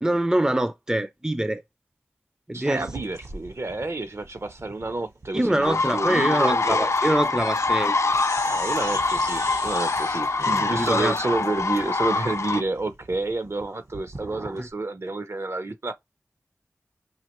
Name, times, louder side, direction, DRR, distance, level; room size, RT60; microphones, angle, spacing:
voice 1, 0.0-1.6 2.5-2.9 5.3-8.0 10.7-11.1 14.6-14.7, right 1 dB, 10° right, 0.5 m, -24 dB
voice 2, 2.5-6.9 8.4-15.9, right 2 dB, 55° right, 0.7 m, -30 dB
sound 1, 2.7-7.9 8.1-14.7, right 1 dB, 75° right, 2.2 m, -40 dB
sound 2, 5.6-12.6, left 3 dB, 60° left, 0.5 m, -24 dB
sound 3, 6.9-7.3 7.5-11.8, right 2 dB, 90° right, 3.2 m, -49 dB
5.5 x 3.0 x 3.0 m
wide cardioid pair, 70°, 5 cm